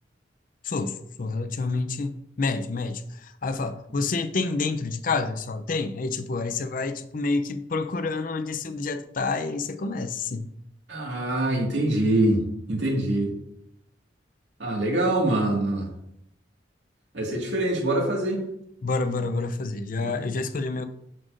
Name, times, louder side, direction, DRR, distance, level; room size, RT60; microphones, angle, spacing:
voice 1, 0.6-10.5 18.8-20.9, left 3 dB, 50° left, 10 dB, 0.5 m, -28 dB
voice 2, 10.9-13.3 14.6-15.9 17.1-18.4 20.0-20.2, right 1 dB, 75° right, 0 dB, 2.0 m, -24 dB
7.4 x 6.6 x 2.6 m, 0.75 s
head